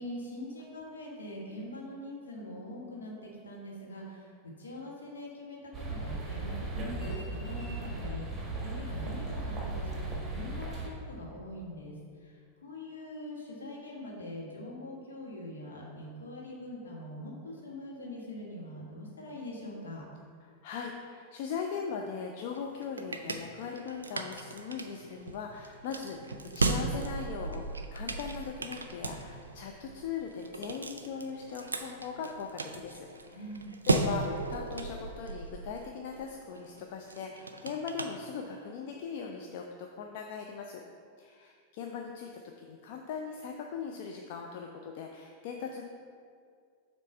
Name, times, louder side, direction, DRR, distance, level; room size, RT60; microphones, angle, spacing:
voice 1, 0.0-11.9 12.2-12.3 12.6-20.0 33.3-33.7, left 1 dB, 70° left, -2 dB, 1.3 m, -43 dB
sound 1, 5.7-10.9, right 2 dB, 15° right, 1.4 m, -36 dB
voice 2, 20.4-33.6 33.9-39.6 40.0-40.8 41.2-45.8, left 6 dB, 50° left, 2 dB, 0.4 m, -39 dB
sound 2, 22.5-38.8, right 3 dB, 75° right, 0.4 m, -37 dB
7.3 x 3.1 x 5.2 m, 2.2 s
figure-of-eight pair, 90°, 0 cm